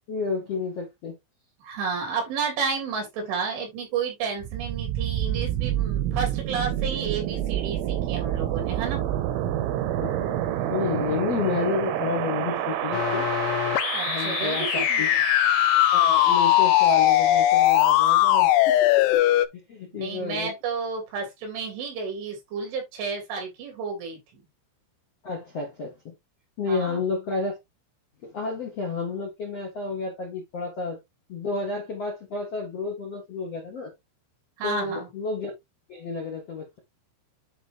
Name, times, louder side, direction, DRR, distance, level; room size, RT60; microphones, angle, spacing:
voice 1, 0.1-1.2 10.0-13.3 14.0-15.1 15.9-19.2 19.7-20.5 25.2-26.1 26.6-27.6 28.2-31.0 31.3-33.9 34.6-35.5 35.9-36.8, left 4 dB, 55° left, 1.8 m, -31 dB
voice 2, 1.6-9.0 13.9-15.2 20.0-24.4 26.7-27.0 34.6-35.1, right 5 dB, 70° right, 5.3 m, -31 dB
sound 1, 4.4-18.2, right 11 dB, 85° right, 3.6 m, -29 dB
sound 2, 12.9-19.5, left 14 dB, 80° left, 2.9 m, -20 dB
10.5 x 3.9 x 2.7 m
omnidirectional pair, 5.8 m